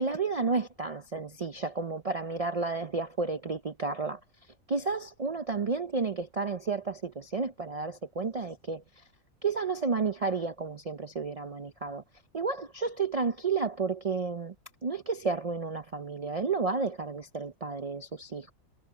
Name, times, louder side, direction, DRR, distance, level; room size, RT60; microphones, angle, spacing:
voice 1, 0.0-4.2 4.7-8.8 9.4-12.0 12.3-14.5 14.8-18.5, right 4 dB, 50° right, 0.4 m, -31 dB
omnidirectional pair, 1.4 m